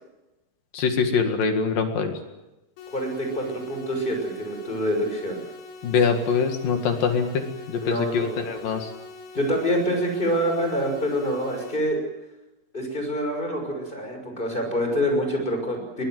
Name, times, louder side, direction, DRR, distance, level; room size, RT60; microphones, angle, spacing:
voice 1, 0.7-2.1 5.8-8.9, left 5 dB, 55° left, 5 dB, 3.0 m, -24 dB
sound 1, 2.8-11.8, left 3 dB, 90° left, 5.6 m, -43 dB
voice 2, 2.9-5.4 7.8-8.4 9.3-12.0 12.7-16.0, equal, 10° left, 3 dB, 5.9 m, -26 dB
22.5 x 21.0 x 7.8 m, 1.0 s
omnidirectional pair, 5.7 m